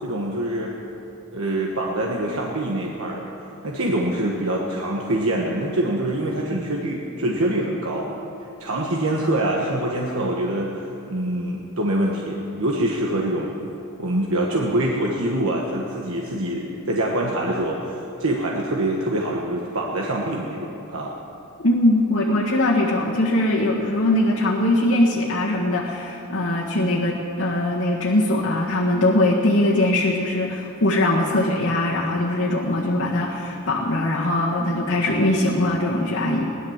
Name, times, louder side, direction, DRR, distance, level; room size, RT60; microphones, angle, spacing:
voice 1, 0.0-0.7 1.3-3.3 3.6-8.1 8.6-10.7 11.1-13.5 14.0-21.1, right 1 dB, 65° right, -1 dB, 1.3 m, -25 dB
voice 2, 21.6-36.4, left 1 dB, 60° left, -5 dB, 1.6 m, -21 dB
17.0 x 11.0 x 7.3 m, 3.0 s
head